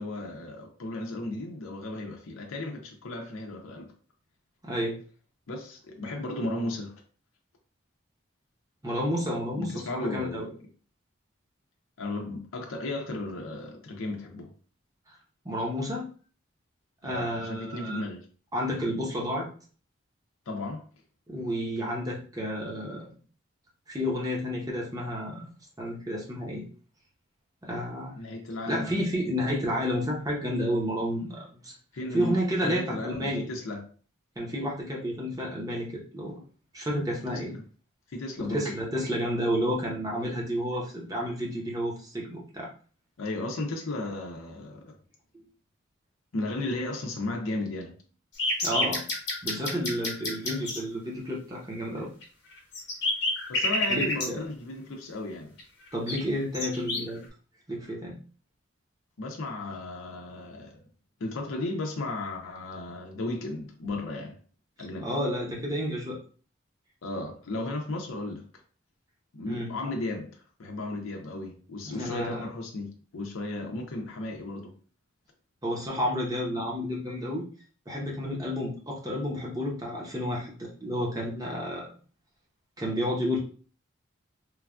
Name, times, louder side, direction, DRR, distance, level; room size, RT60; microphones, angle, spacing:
voice 1, 0.0-3.9 5.5-7.0 9.6-10.6 12.0-14.5 17.0-18.2 20.5-20.8 28.2-28.9 31.9-32.4 32.6-33.8 37.3-37.6 38.1-38.7 43.2-44.9 46.3-48.0 53.5-55.6 59.2-60.8 61.2-64.4 64.8-65.1 67.0-68.4 69.3-74.7, left 2 dB, 85° left, 0.5 m, -35 dB
voice 2, 4.6-5.0 8.8-10.4 15.4-16.0 17.0-18.0 18.5-19.5 21.3-23.1 23.9-25.4 25.8-26.7 27.6-28.1 28.7-31.7 32.1-33.4 34.4-36.4 36.7-37.5 38.4-42.7 45.3-45.5 48.6-49.0 49.4-52.1 53.9-54.4 55.9-57.2 57.7-58.2 65.0-66.2 69.5-69.7 71.8-72.5 75.6-77.4 77.9-81.9 82.8-83.4, equal, 15° right, 0.7 m, -31 dB
sound 1, 48.4-50.8 52.2-52.3 52.5-54.3 55.6-55.7 56.1-57.2, left 1 dB, 55° left, 0.9 m, -28 dB
3.2 x 2.2 x 2.4 m
head